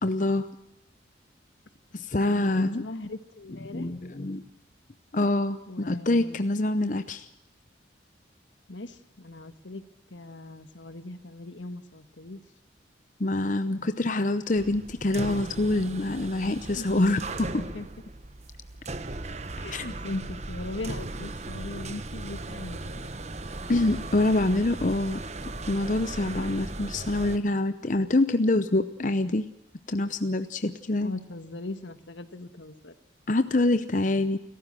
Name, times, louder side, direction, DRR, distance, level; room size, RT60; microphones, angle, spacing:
voice 1, 0.0-0.5 1.9-2.8 3.7-4.4 5.1-7.3 13.2-17.7 19.7-19.9 23.7-25.2 25.7-29.4 29.9-31.1 33.3-34.4, left 2 dB, 40° left, 11 dB, 0.7 m, -25 dB
voice 2, 2.6-3.9 5.7-6.4 6.8-6.9 8.7-9.8 10.1-12.4 16.7-17.2 17.7-17.9 19.6-23.1 31.0-32.9, left 2 dB, 75° left, 11 dB, 1.5 m, -39 dB
sound 1, 14.5-27.4, right 2 dB, 35° right, 1.2 m, -37 dB
29.0 x 15.0 x 7.6 m, 0.88 s
head